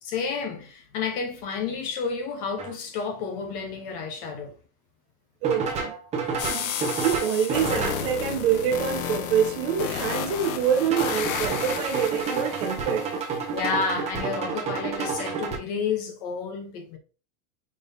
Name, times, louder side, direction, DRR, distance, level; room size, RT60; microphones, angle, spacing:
voice 1, 0.0-4.5 13.5-17.0, left 5 dB, 20° left, 0.4 m, -30 dB
sound 1, 2.6-2.7 5.4-8.1 10.9-15.6, right 5 dB, 15° right, 0.8 m, -30 dB
voice 2, 5.4-5.9 6.5-13.1, right 8 dB, 45° right, 0.7 m, -26 dB
sound 2, 6.4-13.4, left 8 dB, 65° left, 0.9 m, -32 dB
5.2 x 4.0 x 2.5 m
supercardioid pair, 165°, 45 cm